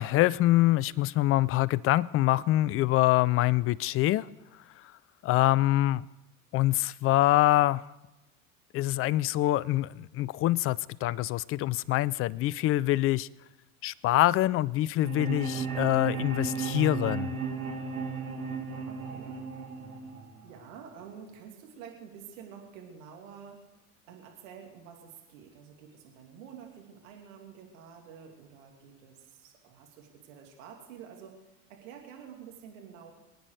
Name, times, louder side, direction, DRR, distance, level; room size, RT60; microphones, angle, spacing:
voice 1, 0.0-4.3 5.2-6.0 6.5-7.8 8.7-13.3 13.8-17.4, left 16 dB, 35° left, 0.4 m, -25 dB
sound 1, 15.0-21.0, right 5 dB, 85° right, 1.9 m, -35 dB
voice 2, 18.9-19.4 20.4-23.6 24.1-31.4 31.7-33.1, right 7 dB, 70° right, 2.7 m, -49 dB
23.5 x 9.3 x 4.8 m
hypercardioid pair, 75°, 42 cm